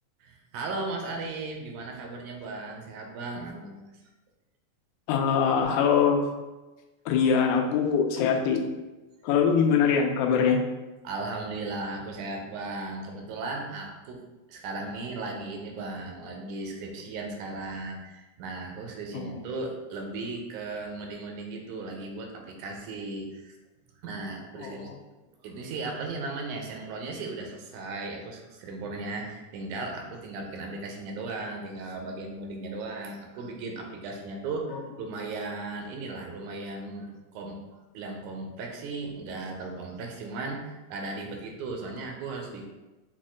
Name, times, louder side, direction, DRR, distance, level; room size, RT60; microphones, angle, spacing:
voice 1, 0.2-3.8 11.0-14.2 14.5-23.6 24.0-24.9 25.4-37.6 37.9-42.7, right 3 dB, 90° right, 2 dB, 2.1 m, -36 dB
voice 2, 5.1-6.3 7.1-8.7 9.2-10.6 19.1-19.3 24.6-24.9 34.7-34.8, left 6 dB, 85° left, 4 dB, 2.0 m, -23 dB
6.2 x 2.1 x 3.6 m, 1.1 s
omnidirectional pair, 3.4 m